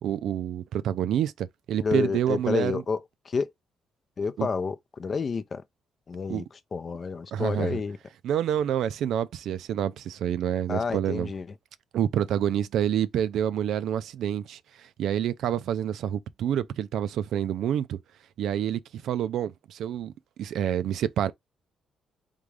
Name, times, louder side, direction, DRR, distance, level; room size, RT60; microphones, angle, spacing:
voice 1, 0.0-2.8 4.4-4.5 6.3-6.4 7.3-7.8 8.2-11.3 11.9-14.6 15.0-18.0 18.4-20.1 20.4-21.3, right 10 dB, 75° right, 0.4 m, -28 dB
voice 2, 1.8-3.0 3.3-3.5 4.2-5.6 6.1-6.4 6.7-8.0 10.7-11.5, left 4 dB, 40° left, 0.5 m, -29 dB
3.7 x 3.5 x 3.2 m
cardioid pair, 90°, 0 cm